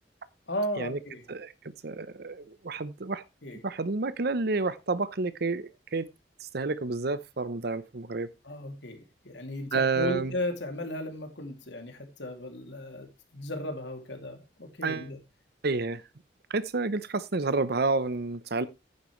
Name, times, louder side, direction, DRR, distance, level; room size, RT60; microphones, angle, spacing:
voice 1, 0.5-1.2 3.4-3.6 8.4-9.0 9.2-15.2, left 1 dB, 75° left, 2.7 m, -35 dB
voice 2, 1.8-3.2 3.6-6.1 6.4-8.3 9.7-10.3 14.8-15.1 15.6-16.0 16.5-18.7, right 3 dB, 60° right, 0.8 m, -29 dB
11.0 x 9.7 x 3.2 m
head